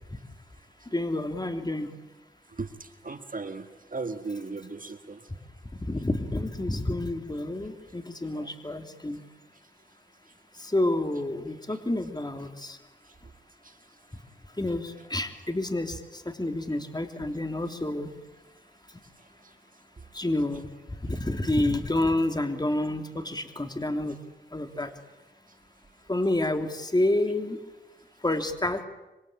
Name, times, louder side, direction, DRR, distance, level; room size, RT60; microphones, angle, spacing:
voice 1, 0.9-1.9 5.8-9.2 10.6-12.8 14.6-18.1 20.1-20.7 21.0-24.2 24.5-24.9 26.1-27.6 28.2-28.8, left 1 dB, 20° left, 6 dB, 3.2 m, -29 dB
voice 2, 2.6-5.3 8.3-8.5 13.1-13.2 13.6-13.8 19.4-19.5, right 3 dB, 45° right, 8 dB, 1.8 m, -37 dB
25.5 x 25.0 x 8.8 m, 1.0 s
cardioid pair, 60°, 19 cm